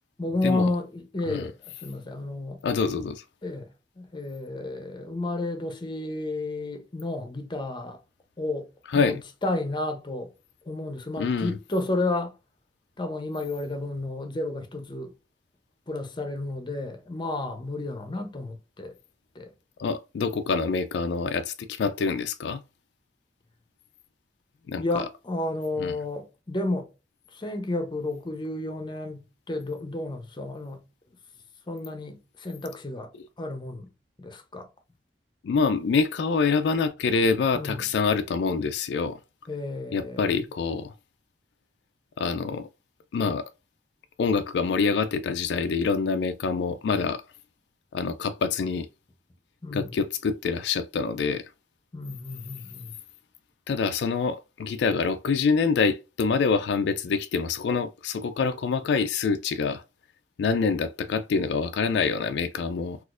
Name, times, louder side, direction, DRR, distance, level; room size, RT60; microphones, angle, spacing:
voice 1, 0.2-2.6 3.4-3.7 4.0-8.0 8.4-10.3 10.6-12.3 13.0-15.1 15.9-19.0 19.3-19.5 24.8-26.9 27.3-30.8 31.7-33.1 33.4-33.9 34.2-34.7 37.5-37.9 39.5-40.4 49.6-50.0 51.9-53.0, left 2 dB, 25° left, 0.7 m, -32 dB
voice 2, 2.6-3.2 8.9-9.2 11.2-11.5 19.8-22.6 24.7-25.1 25.8-25.9 35.4-39.2 39.9-40.9 42.2-42.7 43.1-43.4 44.2-47.2 47.9-48.9 49.7-51.5 53.7-59.8 60.4-63.0, left 5 dB, 70° left, 0.3 m, -26 dB
4.1 x 2.4 x 2.4 m
head